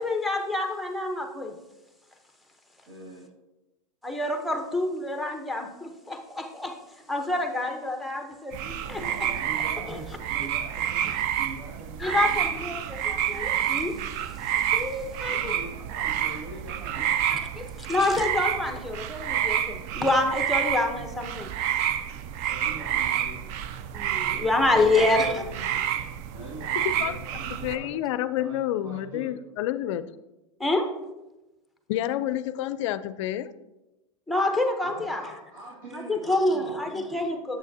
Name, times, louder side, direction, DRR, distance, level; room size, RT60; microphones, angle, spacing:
voice 1, 0.0-1.5 4.0-6.8 7.1-9.0 9.9-10.0 12.0-13.9 14.7-15.5 17.3-21.5 23.9-25.4 30.6-30.9 34.3-35.2 35.9-37.6, left 2 dB, ahead, 4 dB, 0.7 m, -27 dB
voice 2, 2.9-3.3 8.9-12.5 15.3-17.1 22.5-23.4 24.3-25.9 26.3-28.0 28.4-28.6 28.8-29.3 34.8-36.9, right 1 dB, 85° right, -7 dB, 2.2 m, -43 dB
sound 1, 8.5-27.8, right 10 dB, 45° right, 0.4 m, -29 dB
voice 3, 26.8-27.2 27.6-30.1 31.9-33.5, left 12 dB, 60° left, 15 dB, 0.4 m, -29 dB
7.2 x 6.3 x 2.7 m, 1.0 s
hypercardioid pair, 115°, 17 cm